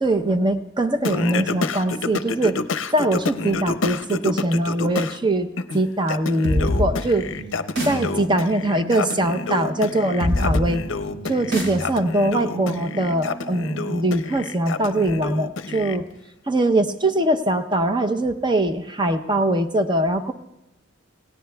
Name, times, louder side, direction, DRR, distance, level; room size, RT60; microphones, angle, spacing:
voice 1, 0.0-2.6 2.9-5.5 5.7-7.3 7.8-10.8 11.2-16.1 16.5-20.3, right 1 dB, 25° right, 7 dB, 0.7 m, -22 dB
Singing, 1.0-5.2 5.6-16.0, left 4 dB, 65° left, 0.6 m, -29 dB
sound 1, 6.4-13.8, left 1 dB, 70° right, 4.2 m, -28 dB
27.0 x 18.0 x 2.3 m, 0.95 s
head